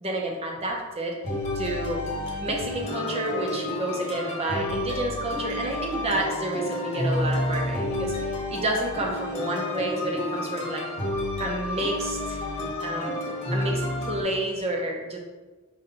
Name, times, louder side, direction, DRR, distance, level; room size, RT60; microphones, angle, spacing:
voice 1, 0.0-1.2 1.5-2.0 2.4-10.8 11.4-12.4 12.8-13.1 13.5-15.2, right 1 dB, 30° right, 0 dB, 0.7 m, -30 dB
sound 1, 1.2-14.2, left 1 dB, 35° left, 1.2 m, -30 dB
5.1 x 3.2 x 2.8 m, 1.3 s
head